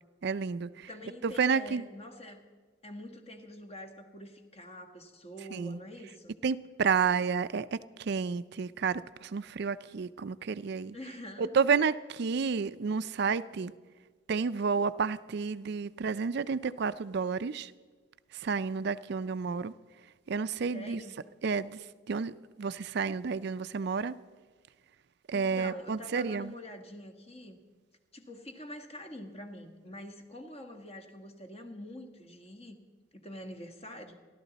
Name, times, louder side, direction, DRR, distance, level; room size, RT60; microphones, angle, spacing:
voice 1, 0.2-0.9 1.2-1.8 5.5-5.8 6.4-11.0 11.4-13.7 14.3-17.7 18.4-19.7 20.3-21.0 21.4-21.8 22.1-24.1 25.3-26.5, right 5 dB, 55° right, 14 dB, 0.4 m, -30 dB
voice 2, 0.9-2.4 2.8-6.3 10.9-11.6 20.7-21.2 25.3-27.6 28.1-32.8 33.1-34.2, equal, 30° left, 5 dB, 1.6 m, -45 dB
29.5 x 12.0 x 4.1 m, 1.5 s
head